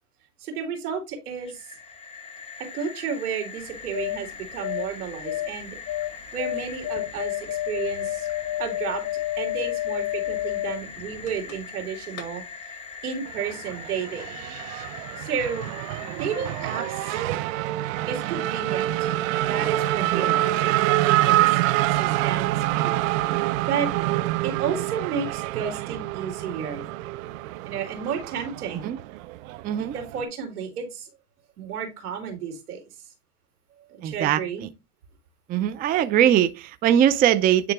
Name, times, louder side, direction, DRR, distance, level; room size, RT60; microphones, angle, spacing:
voice 1, 0.4-1.7 2.6-5.8 6.3-8.3 8.6-9.0 9.4-12.8 13.0-14.3 15.2-15.7 16.0-17.2 18.1-19.1 19.5-22.9 23.7-23.9 24.4-26.9 27.6-28.9 29.9-31.1 31.6-32.8 33.9-34.7, right 7 dB, 85° right, 3.1 m, -32 dB
sound 1, 1.4-17.2, left 5 dB, 15° left, 1.4 m, -41 dB
sound 2, 3.6-11.8 12.1-12.2, left 14 dB, 40° left, 2.0 m, -31 dB
Race car auto racing / Accelerating revving vroom, 13.3-30.2, right 15 dB, 65° right, 0.7 m, -26 dB
voice 2, 34.0-34.4 35.5-37.7, right 10 dB, 20° right, 0.4 m, -21 dB
9.3 x 3.8 x 3.5 m
supercardioid pair, 115°, 44 cm